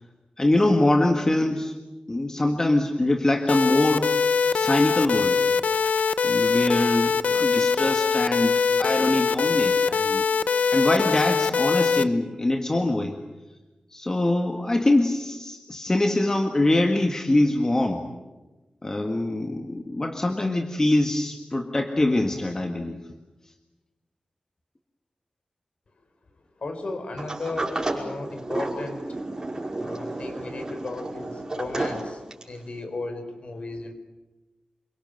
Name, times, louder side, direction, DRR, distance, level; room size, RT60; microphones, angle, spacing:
voice 1, 0.4-1.7 2.1-4.1 4.5-5.4 6.2-10.2 10.7-13.2 13.9-18.0 18.8-23.0, left 1 dB, 25° left, 3 dB, 1.8 m, -23 dB
sound 1, 3.5-12.0, left 5 dB, 80° left, 0.8 m, -22 dB
voice 2, 26.6-29.1 29.8-32.2 32.5-33.9, left 3 dB, 55° left, 7 dB, 4.4 m, -35 dB
Sliding door, 27.2-32.6, right 2 dB, 30° right, 5.7 m, -32 dB
28.0 x 24.5 x 8.0 m, 1.1 s
wide cardioid pair, 130°, 2 cm